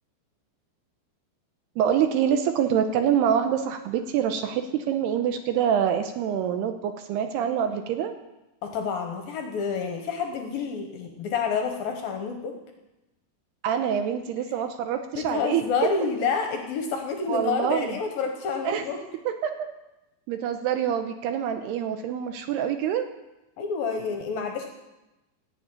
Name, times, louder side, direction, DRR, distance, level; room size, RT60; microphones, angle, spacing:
voice 1, 1.8-8.1 13.6-15.6 17.3-18.0 18.6-18.8 19.4-19.7 20.3-23.0, right 8 dB, 75° right, 7 dB, 2.6 m, -25 dB
voice 2, 8.6-12.6 15.1-19.0 23.6-24.7, left 5 dB, 70° left, 4 dB, 2.4 m, -28 dB
16.5 x 7.2 x 8.9 m, 0.98 s
omnidirectional pair, 5.2 m